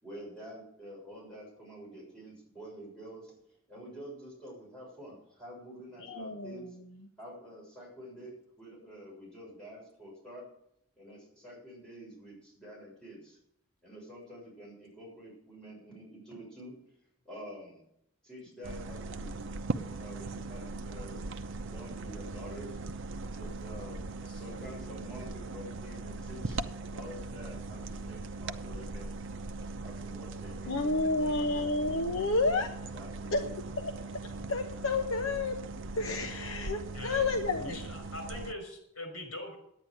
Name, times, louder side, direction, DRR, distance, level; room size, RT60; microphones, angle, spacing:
voice 1, 0.0-3.4 3.7-6.8 7.2-10.5 11.0-13.4 13.8-16.8 17.2-17.8 18.2-21.2 21.6-22.8 23.3-26.7 26.9-29.1 29.8-30.8 31.2-31.7 32.9-33.5, equal, 5° left, -5 dB, 7.0 m, -48 dB
voice 2, 6.0-6.6 30.7-32.7 33.3-33.4 33.8-33.9 34.5-35.6 35.9-37.8, left 3 dB, 65° left, 5 dB, 1.0 m, -30 dB
sound 1, 18.6-38.5, right 3 dB, 60° right, 0.7 m, -40 dB
voice 3, 36.9-37.3 37.6-39.6, left 1 dB, 90° left, 5 dB, 5.3 m, -41 dB
10.5 x 9.5 x 7.9 m, 0.73 s
head